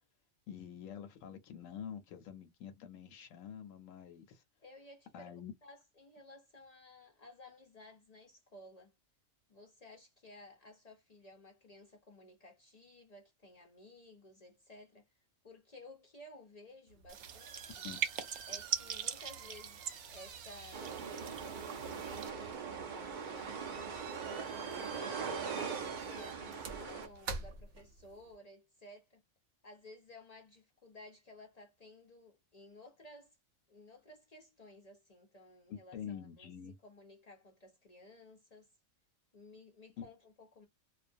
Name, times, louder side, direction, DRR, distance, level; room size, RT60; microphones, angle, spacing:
voice 1, 0.5-4.4 5.1-5.5 17.8-18.0 35.7-36.8, left 8 dB, 90° left, 1.0 m, -47 dB
voice 2, 4.6-5.3 5.6-8.9 9.5-17.9 18.5-21.0 21.4-24.0 25.1-29.2 29.6-33.4 33.7-36.5 36.8-38.7 39.3-40.7, left 2 dB, 60° left, 0.4 m, -56 dB
sound 1, 16.9-28.3, right 5 dB, 70° right, 0.9 m, -49 dB
sound 2, 17.1-22.3, right 8 dB, 90° right, 1.0 m, -41 dB
sound 3, 20.7-27.1, right 6 dB, 55° right, 0.5 m, -41 dB
2.3 x 2.1 x 2.5 m
omnidirectional pair, 1.3 m